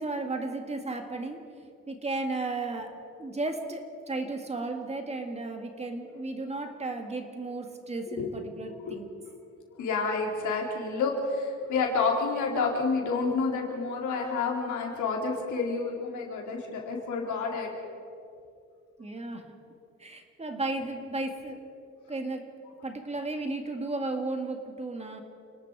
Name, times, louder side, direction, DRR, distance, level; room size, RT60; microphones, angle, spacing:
voice 1, 0.0-9.1 19.0-19.5 20.0-21.7 22.1-22.5 22.8-25.2, right 2 dB, 20° right, 5 dB, 1.9 m, -34 dB
voice 2, 9.7-17.7, left 4 dB, 90° left, 0 dB, 4.0 m, -29 dB
29.0 x 19.0 x 4.8 m, 2.6 s
cardioid pair, 140°, 29 cm